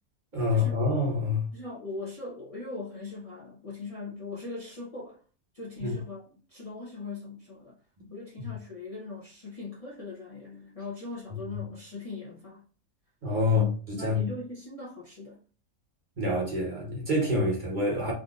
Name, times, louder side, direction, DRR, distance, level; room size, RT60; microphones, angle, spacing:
voice 1, 0.3-1.5 5.8-6.0 8.0-8.1 8.4-8.5 11.3-11.6 13.2-14.2 16.2-18.1, left 2 dB, 40° right, 1.0 m, -27 dB
voice 2, 1.5-5.2 5.5-7.8 8.1-12.6 13.5-15.4, left 3 dB, 35° left, 0.6 m, -40 dB
3.7 x 2.6 x 2.4 m
omnidirectional pair, 1.4 m